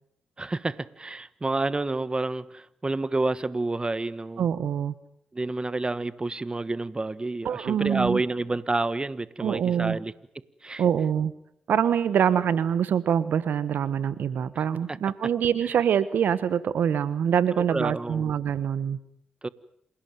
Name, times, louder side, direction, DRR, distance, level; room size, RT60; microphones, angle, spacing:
voice 1, 0.4-4.5 5.3-10.1 10.6-10.8 14.9-15.1 17.5-18.3 19.4-19.5, right 2 dB, 30° right, 1.4 m, -29 dB
voice 2, 4.4-4.9 7.4-8.2 9.4-10.0 10.8-11.3 11.7-19.0, right 8 dB, 70° right, 1.2 m, -25 dB
27.5 x 17.5 x 9.3 m
supercardioid pair, 45°, 3 cm